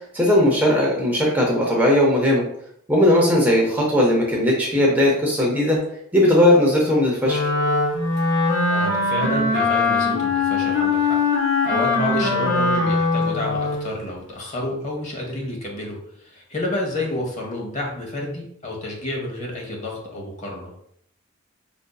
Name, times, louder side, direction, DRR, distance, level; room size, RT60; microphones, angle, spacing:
voice 1, 0.0-2.4 2.9-5.8 6.1-7.4, left 1 dB, 10° right, -3 dB, 0.6 m, -18 dB
Wind instrument woodwind instrument, 7.2-13.9, left 3 dB, 70° left, 1.0 m, -21 dB
voice 2, 8.7-11.2 11.6-20.7, left 1 dB, 35° left, -1 dB, 0.8 m, -29 dB
4.9 x 2.6 x 2.2 m, 0.69 s
head